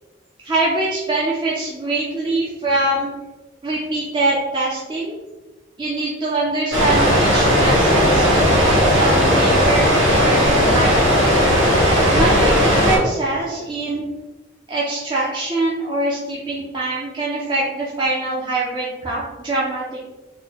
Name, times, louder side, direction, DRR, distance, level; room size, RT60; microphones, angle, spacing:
voice 1, 0.4-3.1 3.6-5.2 5.8-11.4 12.1-14.0 14.7-20.0, right 2 dB, 25° right, -6 dB, 0.5 m, -23 dB
sound 1, 6.7-13.0, equal, 85° right, 1.5 m, -16 dB
3.8 x 2.1 x 3.9 m, 1.1 s
head